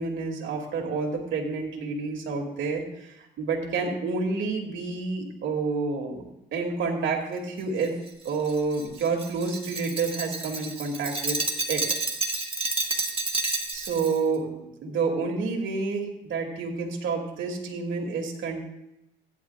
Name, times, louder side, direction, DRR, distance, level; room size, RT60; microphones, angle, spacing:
voice 1, 0.0-6.2 6.5-8.0 8.2-11.4 11.7-11.8 13.7-18.7, right 4 dB, 75° right, 0 dB, 2.8 m, -29 dB
Glass, 7.8-14.2, right 3 dB, 30° right, 1.9 m, -30 dB
16.0 x 11.0 x 2.5 m, 0.85 s
cardioid pair, 90°, 20 cm